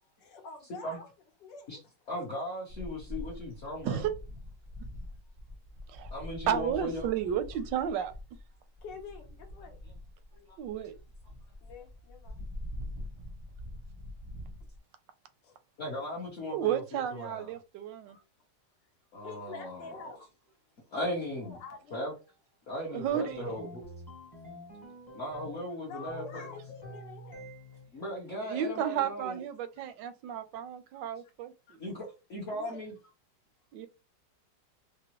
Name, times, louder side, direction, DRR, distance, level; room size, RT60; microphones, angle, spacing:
voice 1, 0.2-1.1 1.4-2.3 7.5-7.7 8.8-9.8 11.6-12.4 15.4-15.5 18.1-18.2 19.2-20.2 21.4-22.0 25.8-27.4 31.7-31.8 32.5-33.1, left 5 dB, 80° left, 1.6 m, -47 dB
voice 2, 2.1-4.1 6.1-7.1 10.5-10.6 15.8-17.5 19.1-20.0 20.9-21.6 21.9-22.1 22.7-23.8 25.1-26.5 27.9-29.4 31.8-32.9, equal, 50° left, 1.2 m, -37 dB
sound 1, 2.7-14.8, left 1 dB, 25° right, 0.6 m, -44 dB
voice 3, 6.5-8.1 10.6-10.9 16.5-18.2 22.9-23.5 28.4-31.5 33.7-33.9, right 9 dB, 85° right, 1.3 m, -32 dB
sound 2, 23.1-25.7 26.1-27.9, left 1 dB, 20° left, 0.7 m, -47 dB
4.9 x 2.0 x 2.9 m
omnidirectional pair, 1.9 m